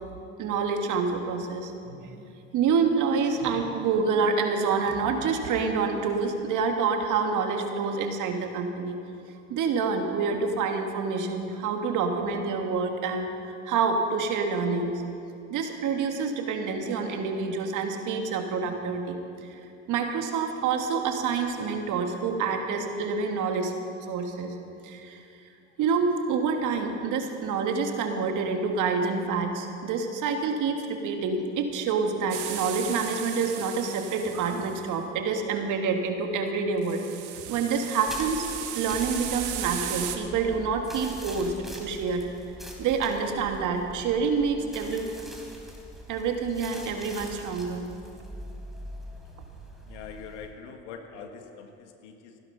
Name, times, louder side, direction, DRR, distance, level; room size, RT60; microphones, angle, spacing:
voice 1, 0.4-2.2 2.5-9.0 9.5-13.3 13.7-14.9 15.5-19.2 19.5-19.6 19.9-24.6 24.8-25.2 25.8-37.1 37.5-38.5 38.7-41.5 41.8-42.2 42.8-45.1 46.1-47.9, right 5 dB, 60° right, 4 dB, 1.8 m, -27 dB
sound 1, 32.3-34.8 36.8-40.2, right 12 dB, 80° right, 1.3 m, -36 dB
sound 2, 38.0-50.5, right 1 dB, ahead, 3.2 m, -43 dB
voice 2, 49.9-52.4, left 6 dB, 85° left, 5 dB, 1.5 m, -43 dB
16.0 x 10.5 x 5.8 m, 2.6 s
supercardioid pair, 80°, 35 cm